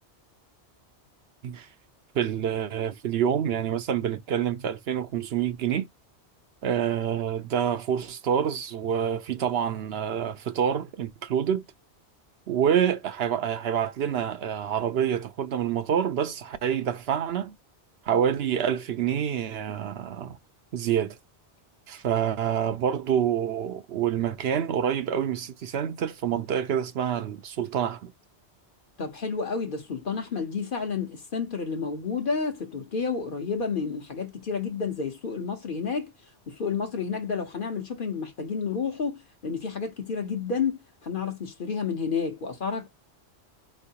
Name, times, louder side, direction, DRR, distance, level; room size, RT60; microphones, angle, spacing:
voice 1, 2.1-5.9 6.6-11.6 12.5-17.5 18.1-20.4 20.7-21.2 21.9-28.1, right 9 dB, 70° right, 0.8 m, -27 dB
voice 2, 29.0-36.1 36.5-42.9, left 5 dB, 50° left, 1.1 m, -30 dB
4.4 x 3.2 x 2.8 m
omnidirectional pair, 1.1 m